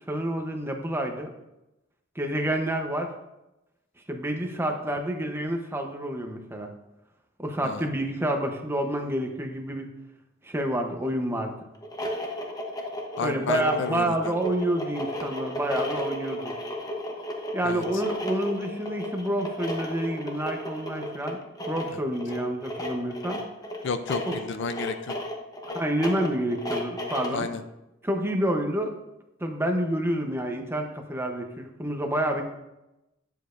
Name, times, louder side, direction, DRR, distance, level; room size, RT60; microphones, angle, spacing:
voice 1, 0.1-1.3 2.2-3.1 4.1-6.7 7.4-9.9 10.4-11.5 13.2-16.5 17.5-21.4 21.7-23.4 24.3-24.4 25.7-27.5 28.0-28.9 29.4-32.4, right 1 dB, 10° right, 3 dB, 0.9 m, -28 dB
sound 1, 11.7-27.4, left 1 dB, 20° left, 1.1 m, -34 dB
voice 2, 13.2-14.3 17.6-17.8 23.8-25.1 27.3-27.6, left 4 dB, 65° left, 10 dB, 0.5 m, -31 dB
10.5 x 7.4 x 2.6 m, 0.93 s
head